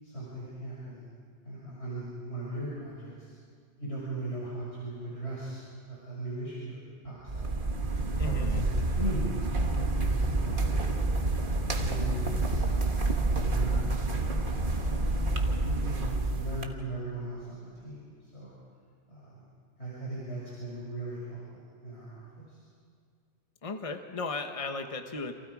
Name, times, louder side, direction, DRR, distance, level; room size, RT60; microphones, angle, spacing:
voice 1, 0.0-1.1 1.4-3.3 3.8-7.5 8.2-11.0 11.8-15.1 15.6-18.5 19.1-19.4 19.8-21.4 21.8-22.6, right 1 dB, 65° left, -7 dB, 6.3 m, -39 dB
sound 1, 7.3-16.6, right 2 dB, 45° right, 1.6 m, -28 dB
voice 2, 8.2-8.6 23.6-25.3, left 3 dB, 30° left, 6 dB, 1.3 m, -36 dB
29.0 x 27.0 x 4.9 m, 2.2 s
omnidirectional pair, 1.2 m